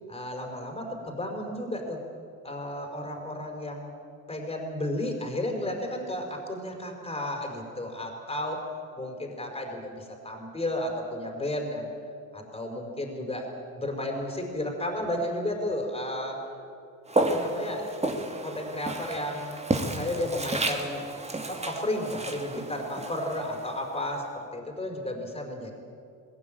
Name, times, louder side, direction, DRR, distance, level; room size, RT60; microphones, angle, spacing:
voice 1, 0.1-2.0 2.4-3.9 4.3-8.6 9.0-11.9 12.3-13.5 13.7-16.4 17.1-17.9 18.4-21.0 21.5-25.7, left 1 dB, 15° left, 2 dB, 5.0 m, -33 dB
Walk footsteps, 17.1-24.2, right 2 dB, 20° right, 2.7 m, -32 dB
19.5 x 17.5 x 9.1 m, 2.5 s
supercardioid pair, 85°, 36 cm